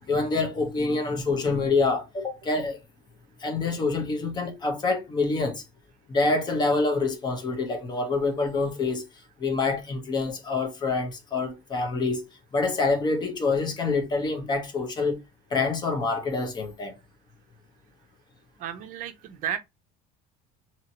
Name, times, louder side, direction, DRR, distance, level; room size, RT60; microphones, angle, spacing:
voice 1, 0.1-2.8 3.4-5.6 6.1-9.0 9.4-15.2 15.5-17.0, left 3 dB, 25° left, 0.9 m, -26 dB
voice 2, 18.6-19.6, right 9 dB, 55° right, 0.5 m, -33 dB
2.8 x 2.8 x 2.7 m
cardioid pair, 145°, 16 cm